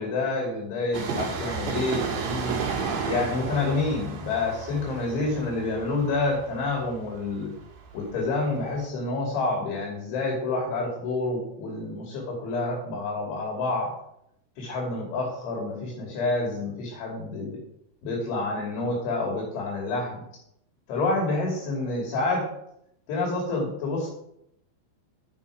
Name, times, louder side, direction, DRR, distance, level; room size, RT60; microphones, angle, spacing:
voice 1, 0.0-2.6 3.0-7.5 7.9-13.9 14.6-17.6 18.0-20.2 20.9-22.5 23.1-24.1, left 3 dB, 70° left, -1 dB, 5.1 m, -28 dB
Train, 0.9-8.4 8.6-8.7, right 5 dB, 60° right, 3.8 m, -32 dB
11.0 x 10.5 x 4.9 m, 0.74 s
omnidirectional pair, 5.9 m